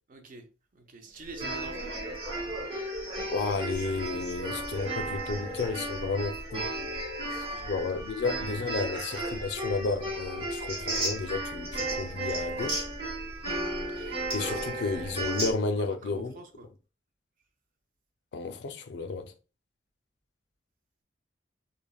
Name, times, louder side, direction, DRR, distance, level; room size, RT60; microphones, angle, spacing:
voice 1, 0.1-0.5 0.7-2.2 7.2-8.3 15.7-16.7, right 3 dB, 50° right, 0.5 m, -47 dB
sound 1, 1.3-15.5, right 1 dB, 35° right, 0.9 m, -34 dB
voice 2, 3.3-6.7 7.7-12.9 13.9-16.3 18.3-19.3, left 3 dB, 70° left, 0.4 m, -32 dB
3.3 x 2.0 x 2.3 m
head